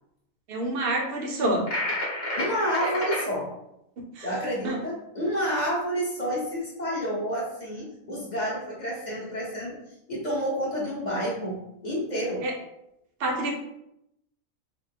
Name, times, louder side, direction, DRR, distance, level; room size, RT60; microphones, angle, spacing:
voice 1, 0.5-1.6 4.2-4.3 4.6-4.8 12.4-12.5 13.2-13.5, right 1 dB, 55° right, 0 dB, 0.8 m, -27 dB
sound 1, 1.7-3.2, left 1 dB, 55° left, 1.8 m, -29 dB
voice 2, 2.4-3.5 4.2-9.7 10.1-12.5, equal, 35° left, -5 dB, 1.0 m, -29 dB
4.3 x 2.1 x 3.4 m, 0.82 s
omnidirectional pair, 1.4 m